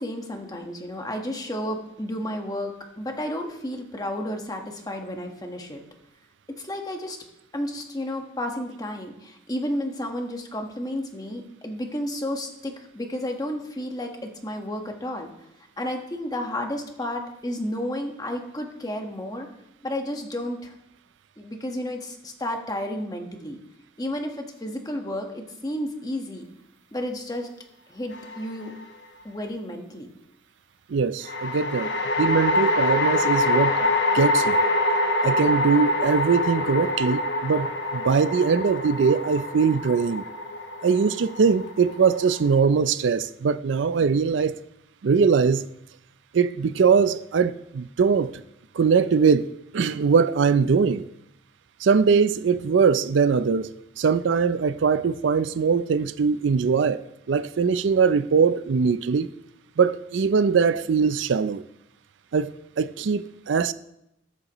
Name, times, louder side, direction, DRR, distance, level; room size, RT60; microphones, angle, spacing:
voice 1, 0.0-5.8 6.5-7.2 7.5-15.3 15.8-19.5 19.8-20.7 21.4-23.6 24.0-26.4 26.9-27.5 27.9-28.7 29.2-30.1, left 1 dB, 20° left, 1.3 m, -32 dB
sound 1, 28.1-28.8 31.3-42.6, left 1 dB, 60° left, 1.3 m, -25 dB
voice 2, 30.9-31.9 32.2-33.8 34.1-34.6 35.2-37.7 37.9-40.2 40.8-44.5 45.0-45.7 46.3-48.3 48.8-51.1 51.8-59.3 59.8-61.6 62.3-62.5 62.8-63.7, right 5 dB, 70° right, 0.4 m, -21 dB
20.0 x 7.9 x 3.0 m
head